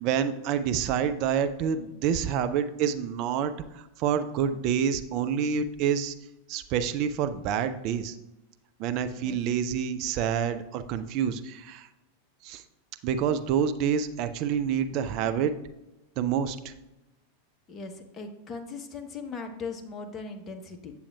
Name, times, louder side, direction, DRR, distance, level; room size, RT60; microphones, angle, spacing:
voice 1, 0.0-3.5 4.0-6.1 6.5-8.1 8.8-11.9 12.4-12.6 13.0-15.5 16.2-16.7, right 8 dB, 40° right, 10 dB, 0.4 m, -27 dB
voice 2, 17.7-20.9, left 4 dB, 25° left, 4 dB, 0.9 m, -39 dB
8.5 x 6.9 x 2.3 m, 0.94 s
figure-of-eight pair, 90°, 0 cm